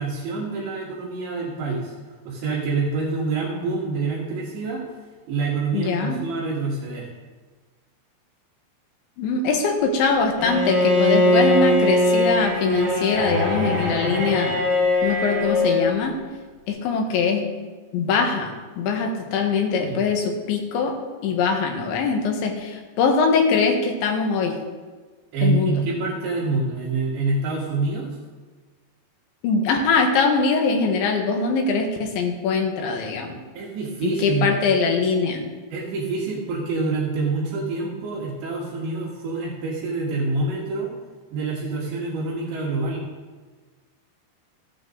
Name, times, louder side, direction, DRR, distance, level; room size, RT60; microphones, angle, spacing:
voice 1, 0.0-1.9 2.3-4.8 5.3-7.1 19.9-20.1 25.3-28.2 33.5-34.5 35.7-40.9 41.3-43.0, right 3 dB, 75° right, -6 dB, 4.4 m, -26 dB
voice 2, 5.7-6.2 9.2-14.6 15.0-16.1 16.7-17.5 17.9-24.6 25.4-25.8 29.4-33.4 34.0-35.4, left 4 dB, 85° left, 2 dB, 3.9 m, -22 dB
Bowed string instrument, 10.4-15.9, left 1 dB, 35° right, 4.7 m, -21 dB
15.5 x 11.5 x 4.0 m, 1.4 s
omnidirectional pair, 5.1 m